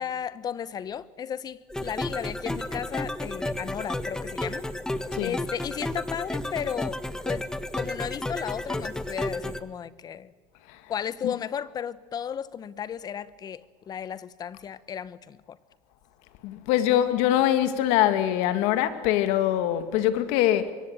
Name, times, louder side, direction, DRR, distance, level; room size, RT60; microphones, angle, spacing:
voice 1, 0.0-4.6 5.2-7.0 7.3-7.5 7.7-10.3 10.9-15.6, left 8 dB, 35° left, 1.0 m, -34 dB
sound 1, 1.7-9.6, left 1 dB, 5° left, 1.3 m, -32 dB
voice 2, 16.4-20.7, left 12 dB, 70° left, 2.1 m, -23 dB
24.5 x 23.0 x 9.0 m
supercardioid pair, 115°, 12 cm